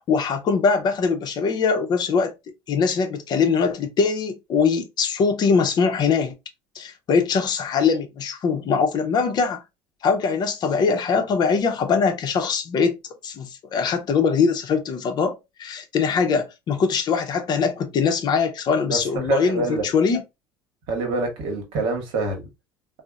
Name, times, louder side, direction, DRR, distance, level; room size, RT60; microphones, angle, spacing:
voice 1, 0.1-2.3 2.7-6.3 6.8-9.6 10.0-13.0 13.2-20.2, left 5 dB, 45° left, 0.6 m, -22 dB
voice 2, 18.9-19.9 20.9-22.4, right 3 dB, 65° right, 1.0 m, -26 dB
2.8 x 2.0 x 2.2 m
supercardioid pair, 85°, 10 cm